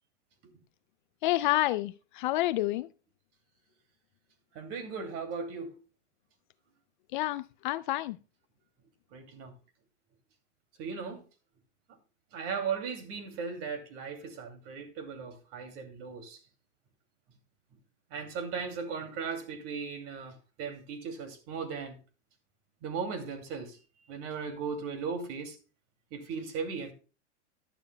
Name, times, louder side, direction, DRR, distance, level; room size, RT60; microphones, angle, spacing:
voice 1, 1.2-2.9 7.1-8.2, left 16 dB, 45° left, 0.5 m, -29 dB
voice 2, 4.5-5.8 9.1-9.5 10.8-11.2 12.3-16.4 18.1-22.0 22.8-23.8 24.1-25.6 26.1-26.9, right 5 dB, 40° right, 2.6 m, -37 dB
13.0 x 12.0 x 2.2 m
hypercardioid pair, 135°, 35 cm